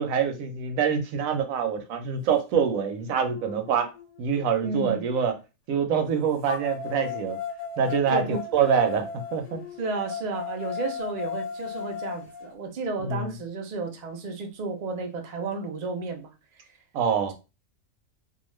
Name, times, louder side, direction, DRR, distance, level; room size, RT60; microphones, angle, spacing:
voice 1, 0.0-3.9 4.2-5.3 5.7-7.4 7.8-9.0 9.3-9.6 13.0-13.3 16.9-17.3, right 7 dB, 80° right, 1.0 m, -25 dB
sound 1, 2.6-2.7 3.3-5.2 6.4-12.5, left 7 dB, 25° left, 0.6 m, -37 dB
voice 2, 4.6-5.0 8.1-8.4 9.8-16.3, right 3 dB, 60° right, 0.4 m, -32 dB
2.5 x 2.3 x 3.0 m
omnidirectional pair, 1.5 m